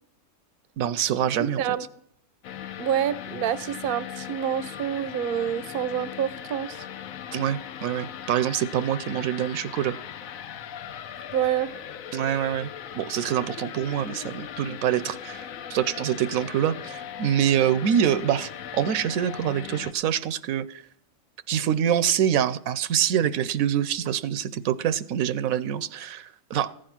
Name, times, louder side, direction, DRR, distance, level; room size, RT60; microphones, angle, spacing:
voice 1, 0.8-1.7 7.3-10.0 12.1-20.8 21.5-26.7, right 10 dB, 85° right, 1.1 m, -25 dB
sound 1, 2.4-19.9, left 9 dB, 85° left, 1.1 m, -39 dB
voice 2, 2.8-6.8 11.3-11.7, right 9 dB, 55° right, 0.7 m, -27 dB
14.5 x 9.0 x 5.9 m
omnidirectional pair, 1.4 m